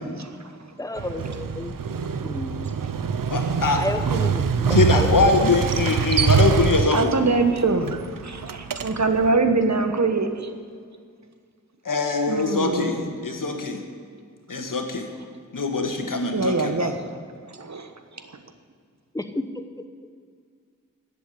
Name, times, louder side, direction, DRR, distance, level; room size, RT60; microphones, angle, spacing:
voice 1, 0.8-1.7 2.2-2.9 3.7-5.4 19.1-19.6, left 2 dB, 10° left, 9 dB, 0.9 m, -31 dB
Motorcycle, 1.0-9.3, right 6 dB, 90° right, 0.7 m, -24 dB
voice 2, 3.3-3.9 4.7-7.2 11.9-13.8 14.5-15.1 15.5-16.9, left 3 dB, 80° left, 4 dB, 1.8 m, -23 dB
voice 3, 6.9-7.9 8.2-10.5 12.3-13.0 16.3-17.0 17.6-17.9, right 3 dB, 55° right, 7 dB, 1.3 m, -23 dB
14.5 x 8.4 x 8.4 m, 2.1 s
wide cardioid pair, 75°, 32 cm